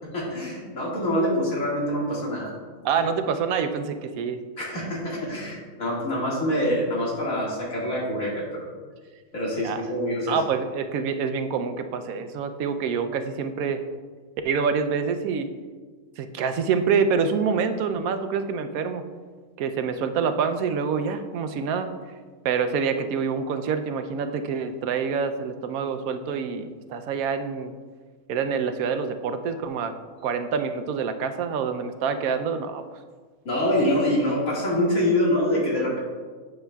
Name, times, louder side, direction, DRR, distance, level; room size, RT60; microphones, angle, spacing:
voice 1, 0.1-2.5 4.6-8.7 9.3-10.4 33.4-36.0, left 1 dB, 75° left, -5 dB, 2.3 m, -25 dB
voice 2, 2.8-4.4 9.6-9.8 10.3-13.8 14.4-15.5 16.2-19.0 19.6-21.9 22.4-27.7 28.3-29.9 30.2-32.8, right 6 dB, 85° right, 8 dB, 1.0 m, -26 dB
9.5 x 6.5 x 2.3 m, 1.5 s
omnidirectional pair, 1.5 m